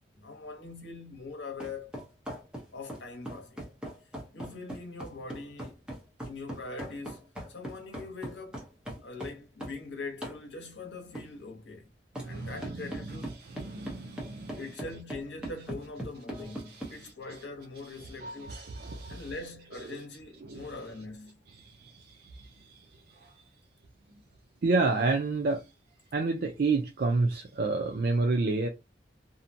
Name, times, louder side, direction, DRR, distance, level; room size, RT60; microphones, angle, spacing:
voice 1, 0.1-2.0 2.7-3.6 4.3-5.8 6.2-8.7 9.0-11.9 12.3-13.4 14.5-18.6 19.1-21.4, left 3 dB, 75° left, 0.9 m, -42 dB
sound 1, 1.6-9.8 10.2-10.4 11.1-11.3 12.1-12.3 12.6-16.9, right 1 dB, 5° right, 0.8 m, -40 dB
voice 2, 12.2-13.2 13.5-14.6 16.7-17.0 18.0-19.3 19.9-20.0 20.4-20.7 21.6-22.8 23.2-23.3 24.6-25.6 26.1-28.7, right 3 dB, 55° right, 0.4 m, -30 dB
2.7 x 2.1 x 2.6 m
head